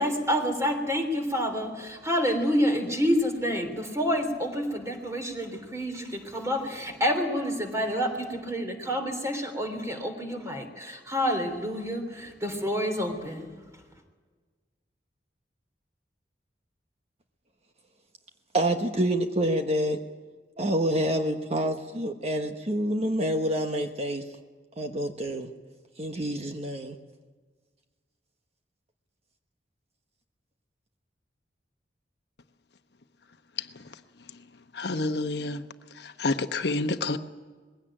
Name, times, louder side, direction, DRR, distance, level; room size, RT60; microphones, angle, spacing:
voice 1, 0.0-13.5, equal, 20° right, 3.3 m, -28 dB
voice 2, 18.5-20.0 20.6-24.2 24.8-25.5 26.0-27.0, right 1 dB, 35° right, 1.2 m, -27 dB
voice 3, 34.7-35.6 36.0-37.2, left 3 dB, 65° left, 1.0 m, -28 dB
20.5 x 16.5 x 8.9 m
head